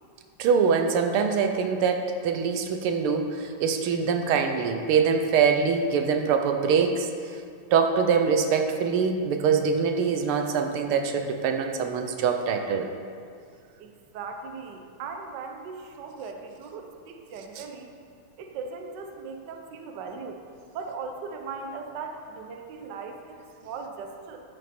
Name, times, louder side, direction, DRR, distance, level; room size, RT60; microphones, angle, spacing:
voice 1, 0.4-7.1 7.7-12.9 17.6-17.7, right 6 dB, 85° right, 5 dB, 1.6 m, -24 dB
voice 2, 13.8-17.9 18.4-20.4 20.7-24.4, right 4 dB, 60° right, 3 dB, 1.4 m, -38 dB
13.0 x 6.7 x 4.3 m, 2.3 s
omnidirectional pair, 2.3 m